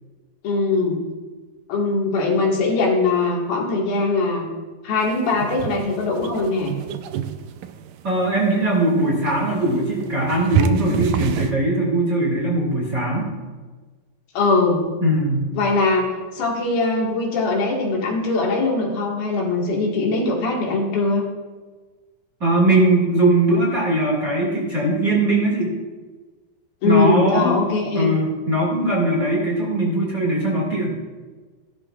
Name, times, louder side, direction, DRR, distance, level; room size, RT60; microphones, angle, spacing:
voice 1, 0.4-1.0 1.7-4.4 4.8-6.8 14.4-14.8 15.5-16.1 16.3-21.3 26.8-28.1, left 3 dB, 80° left, -2 dB, 3.7 m, -21 dB
sound 1, 5.0-11.5, right 8 dB, 85° right, 1.7 m, -28 dB
voice 2, 8.0-13.4 15.0-15.5 22.4-25.7 26.8-27.6 28.0-30.9, right 1 dB, 30° right, -4 dB, 2.2 m, -20 dB
15.0 x 12.5 x 2.4 m, 1.4 s
omnidirectional pair, 4.1 m